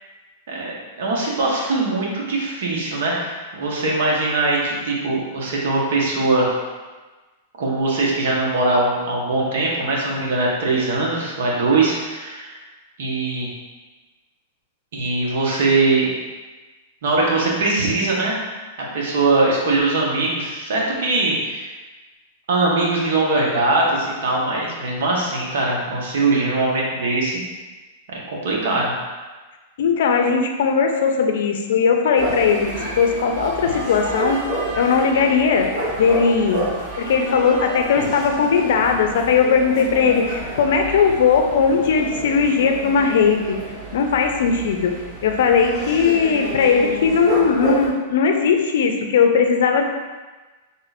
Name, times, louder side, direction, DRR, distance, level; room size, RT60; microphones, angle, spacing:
voice 1, 0.5-6.5 7.6-12.5 13.0-13.5 14.9-16.1 17.0-18.4 18.9-21.7 22.5-27.4 28.1-28.9, right 2 dB, 70° right, -3 dB, 1.1 m, -21 dB
voice 2, 29.8-32.7 33.0-34.4 34.7-35.7 36.0-36.7 37.0-43.6 43.9-49.8, left 6 dB, 70° left, 4 dB, 0.5 m, -18 dB
sound 1, 32.2-47.9, right 2 dB, 30° right, 1.0 m, -29 dB
3.6 x 2.5 x 4.1 m, 1.3 s
supercardioid pair, 150°, 0 cm